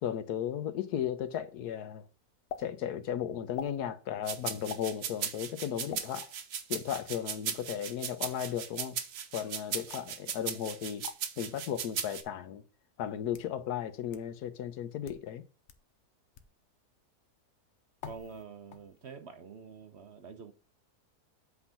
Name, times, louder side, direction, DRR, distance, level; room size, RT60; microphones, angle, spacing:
voice 1, 0.0-2.1 2.6-6.3 6.7-9.0 9.3-11.0 11.4-12.6 13.0-15.4, left 9 dB, 85° left, 1.3 m, -35 dB
sound 1, 2.5-2.6 3.5-3.8 4.7-4.9 5.9-6.0 6.9-7.2 9.9-10.2 11.0-11.2 12.1-12.2 13.1-13.5 14.1-14.2 14.9-15.2 15.7-15.8 16.3-16.5 18.0-18.4 18.7-19.1, left 7 dB, 55° left, 1.0 m, -44 dB
sound 2, 4.3-12.2, right 8 dB, 80° right, 1.4 m, -37 dB
voice 2, 18.0-20.5, right 5 dB, 50° right, 1.0 m, -47 dB
8.2 x 3.9 x 5.6 m
omnidirectional pair, 1.6 m